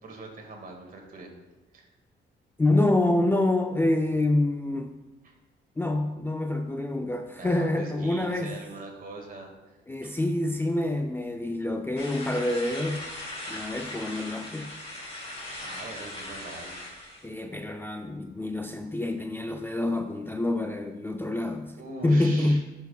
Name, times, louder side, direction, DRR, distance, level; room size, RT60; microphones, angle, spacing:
voice 1, 0.0-1.3 1.7-1.9 5.2-5.3 7.4-9.5 10.0-10.2 15.6-16.8 21.8-22.6, right 2 dB, 45° right, 1 dB, 1.9 m, -42 dB
voice 2, 2.6-4.9 5.8-8.6 9.9-13.0 13.5-14.7 17.2-21.8 22.0-22.6, left 1 dB, 10° left, 5 dB, 0.4 m, -26 dB
sound 1, 12.0-17.2, left 1 dB, 30° left, 2.6 m, -39 dB
11.5 x 5.9 x 2.3 m, 1.1 s
cardioid pair, 90°, 20 cm